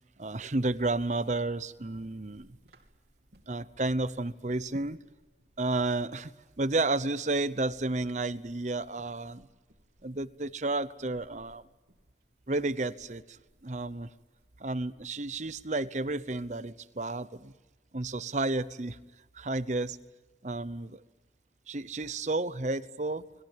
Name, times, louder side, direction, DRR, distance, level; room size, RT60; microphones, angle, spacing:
voice 1, 0.2-2.6 3.5-5.0 5.6-9.5 10.0-11.6 12.5-14.1 14.6-17.5 17.9-19.0 19.3-20.0 20.4-21.0 21.7-23.2, right 2 dB, 40° right, 15 dB, 0.8 m, -32 dB
sound 1, 1.7-15.7, right 1 dB, 70° right, 2.8 m, -62 dB
30.0 x 21.0 x 7.4 m, 1.2 s
head